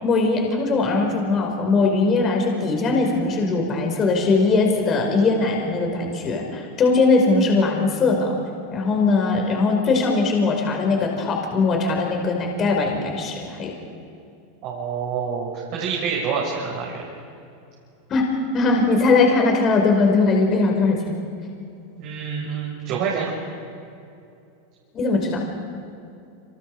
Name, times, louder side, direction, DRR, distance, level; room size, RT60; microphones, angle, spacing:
voice 1, 0.0-8.3 8.7-13.7 18.1-18.3 18.5-21.1 24.9-25.4, left 3 dB, 35° left, 2 dB, 5.4 m, -20 dB
voice 2, 14.6-17.0 22.0-23.3, right 6 dB, 50° right, -3 dB, 6.2 m, -27 dB
30.0 x 28.0 x 5.0 m, 2.6 s
hypercardioid pair, 95°, 0 cm